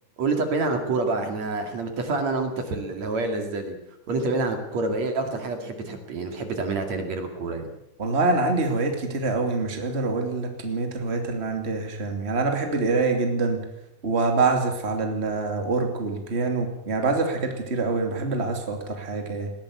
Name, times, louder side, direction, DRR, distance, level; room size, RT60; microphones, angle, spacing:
voice 1, 0.2-3.8 4.1-7.7, right 3 dB, 60° right, 5 dB, 3.5 m, -27 dB
voice 2, 8.0-13.6 14.0-19.5, right 3 dB, 20° right, 4 dB, 2.8 m, -25 dB
20.0 x 17.0 x 8.3 m, 0.81 s
omnidirectional pair, 3.7 m